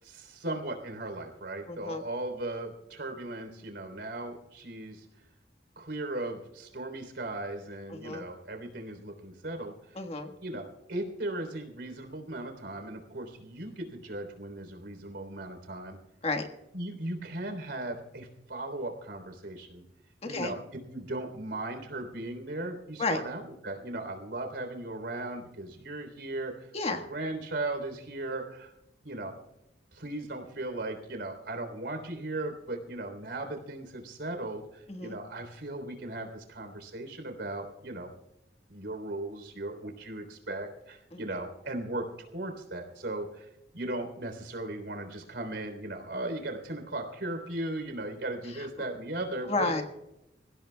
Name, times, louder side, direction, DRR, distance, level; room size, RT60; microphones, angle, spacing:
voice 1, 0.0-5.0 5.8-10.0 10.4-16.0 16.7-19.8 20.2-26.5 26.9-28.7 29.0-29.3 29.9-38.1 38.7-49.7, right 2 dB, 65° right, 4 dB, 3.4 m, -37 dB
voice 2, 1.7-2.0 7.9-8.3 9.9-10.3 16.2-16.5 20.2-20.5 23.0-23.2 26.7-27.0 34.9-35.2 41.1-41.2 48.6-48.9 49.5-49.8, left 3 dB, 35° left, 6 dB, 1.4 m, -32 dB
27.0 x 16.0 x 2.3 m, 0.90 s
head